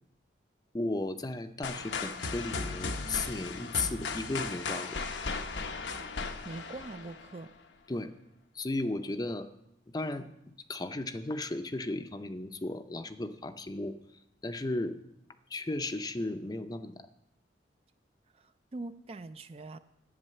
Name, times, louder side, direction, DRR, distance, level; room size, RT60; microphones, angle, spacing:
voice 1, 0.7-5.0 7.9-8.1 8.5-9.5 9.9-10.3 10.7-14.0 14.4-15.0 15.5-17.1, left 2 dB, 20° left, 10 dB, 0.5 m, -35 dB
sound 1, 1.6-7.5, left 4 dB, 85° left, 0.9 m, -36 dB
voice 2, 6.4-7.5 18.3-19.8, right 2 dB, 35° right, 12 dB, 0.4 m, -43 dB
11.0 x 8.4 x 6.6 m, 0.83 s
head